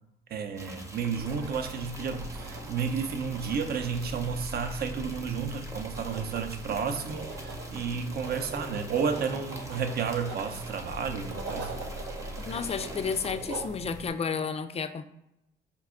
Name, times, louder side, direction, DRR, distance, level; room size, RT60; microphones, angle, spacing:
voice 1, 0.3-11.7, right 6 dB, 50° right, 7 dB, 0.6 m, -32 dB
sound 1, 0.5-13.3, right 1 dB, 15° right, 0.7 m, -45 dB
sound 2, 1.2-14.1, right 2 dB, 75° right, 0.9 m, -40 dB
voice 2, 12.4-15.0, left 5 dB, 30° left, 9 dB, 0.4 m, -32 dB
4.9 x 2.3 x 3.6 m, 0.87 s
cardioid pair, 90°, 20 cm